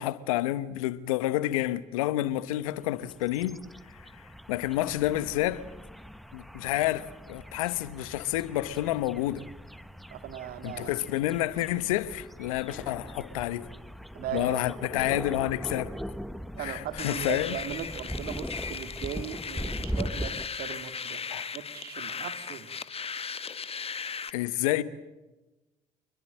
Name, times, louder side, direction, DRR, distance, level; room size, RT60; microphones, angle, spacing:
voice 1, 0.0-3.6 3.9-5.7 6.3-9.4 10.6-13.7 14.3-15.9 16.6-17.6 21.3-21.5 24.3-24.8, left 15 dB, 80° left, 1.1 m, -29 dB
sound 1, 2.7-20.5, equal, ahead, 1.2 m, -40 dB
voice 2, 10.1-10.9 14.1-14.6 16.6-21.2 21.5-22.7, right 10 dB, 65° right, 2.3 m, -38 dB
sound 2, 17.0-24.3, left 6 dB, 35° left, 1.8 m, -37 dB
27.0 x 22.0 x 7.5 m
hypercardioid pair, 55°, 17 cm